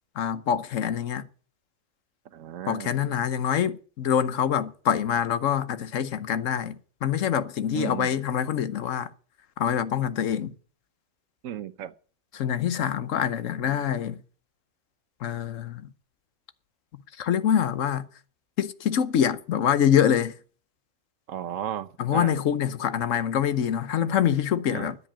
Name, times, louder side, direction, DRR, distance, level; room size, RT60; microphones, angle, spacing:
voice 1, 0.2-1.3 2.7-9.1 9.6-10.5 12.3-14.2 15.2-15.9 17.2-18.1 18.6-20.3 22.0-25.0, left 9 dB, 80° left, 1.3 m, -25 dB
voice 2, 2.3-2.9 7.7-8.1 11.4-11.9 21.3-22.3 24.7-24.9, right 10 dB, 80° right, 1.2 m, -34 dB
10.5 x 7.9 x 9.8 m
omnidirectional pair, 1.3 m